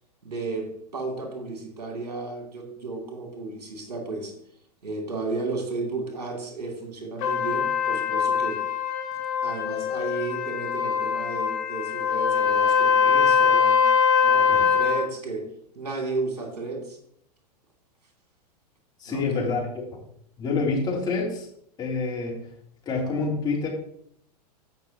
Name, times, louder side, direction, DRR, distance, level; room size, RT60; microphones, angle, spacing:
voice 1, 0.2-4.3 4.8-8.6 9.4-13.8 14.2-15.5 15.7-17.0 19.1-19.5, right 3 dB, 65° right, 2 dB, 2.8 m, -33 dB
Trumpet, 7.2-15.0, left 6 dB, 45° left, 2.5 m, -22 dB
voice 2, 19.0-19.6 19.9-20.0 20.4-21.5 21.8-22.3 22.8-23.7, left 4 dB, 20° left, -3 dB, 3.1 m, -27 dB
16.5 x 6.0 x 2.9 m, 0.67 s
figure-of-eight pair, 95°, 21 cm